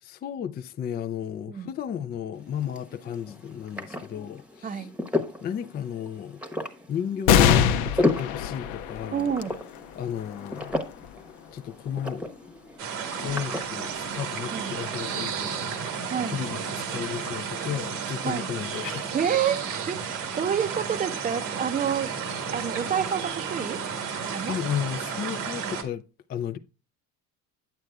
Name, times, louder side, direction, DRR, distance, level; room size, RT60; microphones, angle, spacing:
voice 1, 0.0-4.9 5.4-6.4 6.9-9.3 9.9-10.8 11.5-12.3 13.2-15.9 16.3-19.2 24.4-26.0 26.3-26.6, left 9 dB, 25° left, 0.3 m, -33 dB
sound 1, 2.3-15.2, left 2 dB, 5° right, 1.0 m, -34 dB
voice 2, 4.6-5.0 9.1-9.6 14.5-14.7 16.1-16.4 18.2-18.5 19.1-22.1 22.5-23.8 24.3-24.6, right 8 dB, 20° right, 0.6 m, -28 dB
sound 2, 7.3-14.2 14.8-14.9 16.0-16.5, left 8 dB, 70° left, 0.7 m, -27 dB
sound 3, 12.8-25.8, right 6 dB, 85° right, 1.6 m, -32 dB
8.8 x 7.9 x 2.3 m
supercardioid pair, 100°, 38 cm